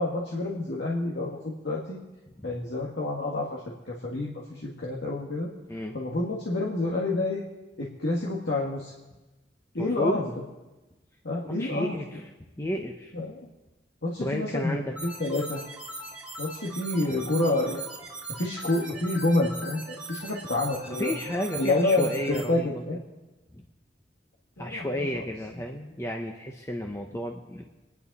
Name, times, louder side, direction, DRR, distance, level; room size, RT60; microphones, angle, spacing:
voice 1, 0.0-2.0 2.4-5.5 5.9-7.4 7.8-8.9 9.7-10.2 11.2-12.0 13.1-13.5 14.0-14.8 15.0-15.6 16.4-17.8 18.3-21.1 21.5-23.0 24.6-24.9, left 2 dB, 75° left, -4 dB, 1.8 m, -28 dB
voice 2, 9.8-10.2 11.4-12.2 12.6-13.1 14.2-14.9 21.0-22.8 23.5-23.6 24.6-27.6, left 1 dB, 15° left, 2 dB, 0.8 m, -32 dB
sound 1, 15.0-22.4, right 3 dB, 5° right, 1.8 m, -40 dB
26.0 x 10.5 x 4.2 m, 1.1 s
head